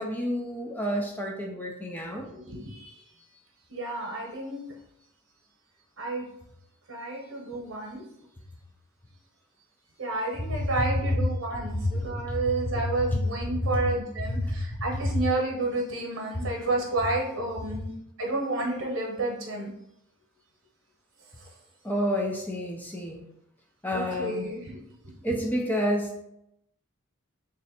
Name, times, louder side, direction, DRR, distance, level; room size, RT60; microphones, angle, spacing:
voice 1, 0.0-2.3 11.7-11.9 21.8-23.2 23.8-24.5 25.2-26.2, equal, 10° left, 1 dB, 0.4 m, -29 dB
voice 2, 2.1-3.0 3.7-4.8 6.0-6.3 6.9-8.1 10.0-19.7 21.4-21.5 24.1-25.4, right 2 dB, 65° right, 0 dB, 0.9 m, -31 dB
3.1 x 2.6 x 4.1 m, 0.80 s
head